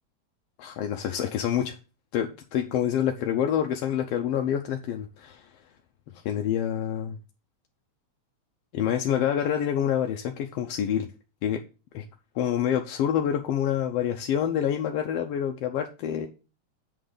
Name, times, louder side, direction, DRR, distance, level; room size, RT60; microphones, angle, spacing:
voice 1, 0.6-1.8 2.1-5.5 6.2-7.2 8.7-11.1 11.4-11.6 11.9-12.0 12.3-16.3, left 9 dB, 75° left, 4 dB, 1.5 m, -27 dB
7.8 x 3.8 x 6.6 m, 0.31 s
omnidirectional pair, 3.3 m